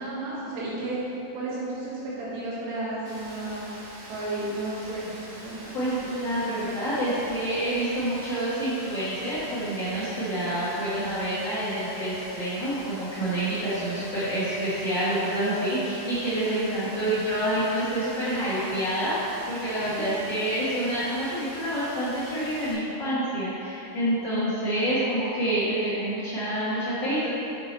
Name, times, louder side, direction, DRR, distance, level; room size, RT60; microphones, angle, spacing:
voice 1, 0.0-3.8 4.1-5.2 5.4-5.8 16.5-16.9 19.8-20.0, right 2 dB, 90° right, -8 dB, 3.9 m, -33 dB
Rain, 3.0-22.7, right 1 dB, 60° right, 1.3 m, -44 dB
voice 2, 5.7-19.1 19.5-27.3, right 1 dB, 75° left, -13 dB, 1.0 m, -27 dB
6.6 x 6.4 x 4.3 m, 2.9 s
omnidirectional pair, 4.9 m